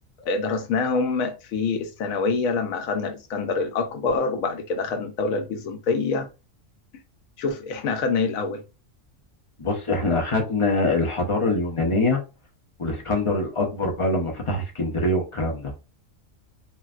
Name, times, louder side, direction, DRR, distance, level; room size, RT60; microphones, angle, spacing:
voice 1, 0.2-6.3 7.4-8.6, left 4 dB, 85° left, 1.1 m, -26 dB
voice 2, 9.6-12.2 12.8-15.7, left 2 dB, 35° left, 0.6 m, -24 dB
3.8 x 2.1 x 2.4 m
omnidirectional pair, 1.4 m